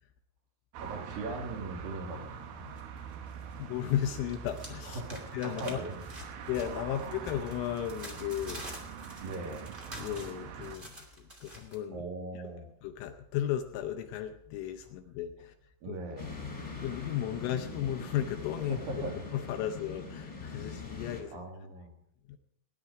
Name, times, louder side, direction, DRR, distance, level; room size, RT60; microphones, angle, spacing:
sound 1, 0.7-10.8, right 7 dB, 75° right, 2.2 m, -44 dB
voice 1, 0.8-2.7 3.5-3.6 4.9-6.0 9.2-9.7 11.9-12.7 15.8-16.3 18.7-19.2 21.3-21.9, right 2 dB, 50° right, 1 dB, 3.6 m, -39 dB
sound 2, 2.8-3.6 3.9-11.8, right 1 dB, 30° right, 1.0 m, -48 dB
voice 2, 3.6-5.0 5.3-5.8 6.5-8.6 10.0-10.9 11.4-12.0 12.5-15.5 15.9-16.0 16.7-18.8 19.3-21.4 22.3-22.4, left 11 dB, 80° left, 6 dB, 3.0 m, -35 dB
sound 3, 16.2-21.2, left 4 dB, 10° left, 2.1 m, -42 dB
18.5 x 10.5 x 4.8 m, 0.73 s
omnidirectional pair, 6.0 m